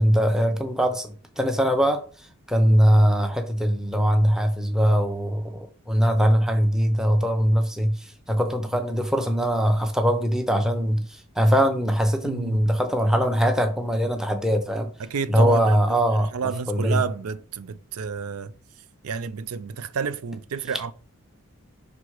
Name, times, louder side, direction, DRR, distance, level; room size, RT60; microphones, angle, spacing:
voice 1, 0.0-2.0 2.5-8.0 8.3-14.9 15.3-16.3 16.7-17.0, equal, 5° right, 0.7 m, -21 dB
voice 2, 12.2-12.6 15.0-16.0 16.3-18.5 19.0-20.9, right 6 dB, 80° right, 0.5 m, -30 dB
6.1 x 3.6 x 4.7 m
head